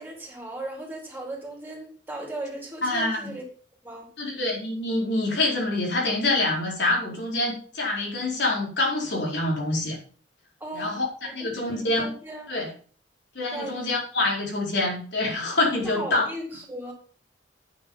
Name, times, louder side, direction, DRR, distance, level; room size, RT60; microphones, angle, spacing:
voice 1, 0.0-3.4 3.8-4.1 10.6-10.9 11.2-12.5 13.5-13.9 15.8-16.9, right 1 dB, 10° right, -1 dB, 4.0 m, -37 dB
voice 2, 2.8-3.3 4.2-10.0 10.7-11.1 11.3-12.1 12.5-12.7 13.3-16.2, left 2 dB, 70° left, -2 dB, 4.6 m, -26 dB
9.2 x 9.2 x 5.7 m, 0.42 s
head